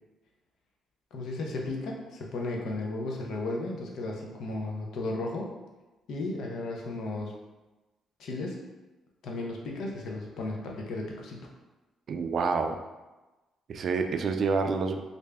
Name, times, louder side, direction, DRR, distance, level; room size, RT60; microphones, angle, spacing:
voice 1, 1.1-5.5 6.1-7.3 8.2-8.6 9.2-11.5, left 2 dB, 75° left, -1 dB, 0.7 m, -34 dB
voice 2, 12.1-12.8 13.7-15.0, right 4 dB, 60° right, 6 dB, 0.3 m, -28 dB
3.3 x 2.6 x 3.4 m, 1.1 s
cardioid pair, 90°, 0 cm